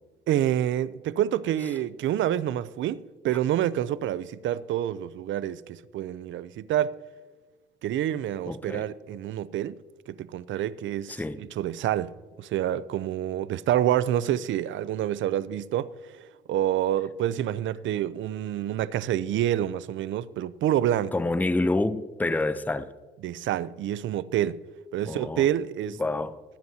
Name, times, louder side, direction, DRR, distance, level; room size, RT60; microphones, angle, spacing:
voice 1, 0.3-6.9 7.8-9.8 10.1-21.2 23.2-24.6 24.9-26.0, right 11 dB, 75° right, 0.5 m, -28 dB
voice 2, 8.5-8.8 11.1-11.4 21.1-22.9 25.1-25.5 26.0-26.4, left 2 dB, 10° left, 0.6 m, -27 dB
23.0 x 9.4 x 2.8 m
cardioid pair, 90°, 20 cm